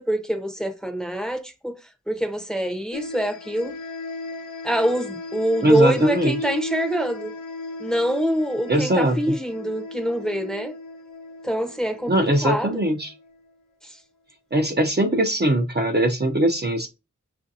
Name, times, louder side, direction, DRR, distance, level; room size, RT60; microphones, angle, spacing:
voice 1, 0.0-1.7 2.1-3.7 4.6-7.3 7.8-10.7 11.4-12.8 13.8-14.0, equal, ahead, 0.7 m, -25 dB
sound 1, 2.9-13.4, left 2 dB, 75° left, 0.5 m, -36 dB
voice 2, 5.6-6.3 8.7-9.4 12.1-13.1 14.5-16.9, right 1 dB, 35° right, 0.6 m, -21 dB
6.0 x 2.5 x 2.7 m
wide cardioid pair, 60°, 31 cm